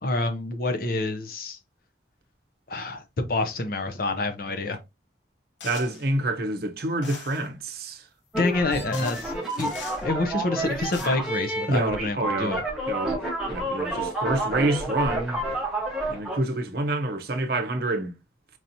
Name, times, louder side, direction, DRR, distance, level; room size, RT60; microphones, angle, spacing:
voice 1, 0.0-1.6 2.7-4.8 8.4-9.3 9.6-12.6, left 2 dB, 50° left, 0.6 m, -27 dB
sound 1, 5.6-6.1 7.0-7.5 8.5-8.6 8.9-10.0 10.7-11.1, left 5 dB, 80° left, 0.8 m, -42 dB
voice 2, 5.6-8.1 11.7-12.6 12.9-13.2 13.5-15.4 16.1-18.1, right 2 dB, 55° right, 0.7 m, -27 dB
sound 2, 8.3-16.4, right 1 dB, 5° right, 0.9 m, -29 dB
4.7 x 2.8 x 2.6 m
head